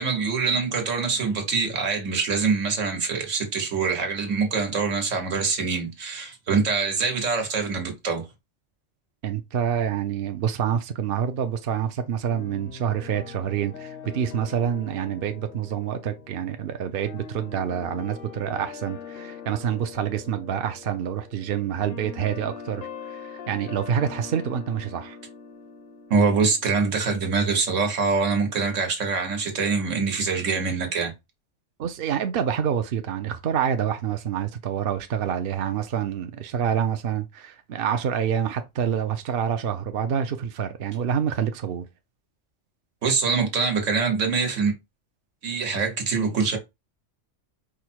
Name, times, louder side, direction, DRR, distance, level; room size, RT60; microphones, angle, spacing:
voice 1, 0.0-8.2 26.1-31.1 43.0-44.7 45.4-46.6, right 4 dB, 85° right, 1.6 m, -24 dB
voice 2, 9.2-25.2 31.8-41.9, right 8 dB, 60° right, 0.7 m, -27 dB
sound 1, 12.3-26.7, left 6 dB, 55° left, 0.7 m, -42 dB
4.9 x 2.1 x 4.4 m
omnidirectional pair, 1.3 m